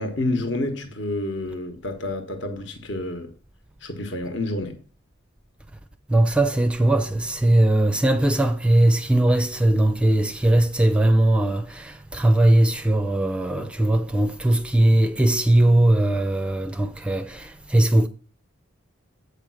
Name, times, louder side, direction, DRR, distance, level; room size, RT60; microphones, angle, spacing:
voice 1, 0.0-3.3 3.8-4.8 13.5-13.7, left 2 dB, 60° left, 1.2 m, -29 dB
voice 2, 6.1-18.1, right 1 dB, 5° right, 0.4 m, -19 dB
8.2 x 5.2 x 6.3 m
head